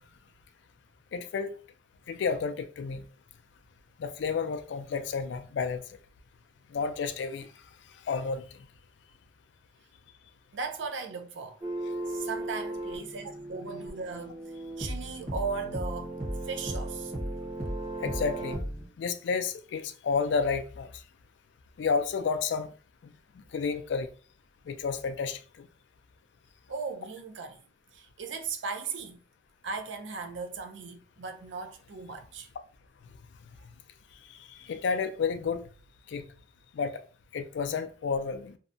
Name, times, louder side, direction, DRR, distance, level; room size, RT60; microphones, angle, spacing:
voice 1, 1.1-1.5 2.1-3.0 4.0-5.8 6.7-7.5 8.1-8.4 18.0-18.6 19.0-20.9 21.8-22.7 23.5-24.1 24.7-25.7 34.3-35.7 36.1-36.2 36.7-37.0 37.3-38.6, left 5 dB, 70° left, 0.3 m, -31 dB
voice 2, 10.5-11.6 12.0-14.4 14.8-16.1 16.5-17.1 26.7-27.6 27.9-29.2 29.6-32.5, right 5 dB, 75° right, 0.4 m, -37 dB
sound 1, 11.6-18.8, right 1 dB, 35° right, 0.8 m, -36 dB
2.7 x 2.1 x 2.5 m
head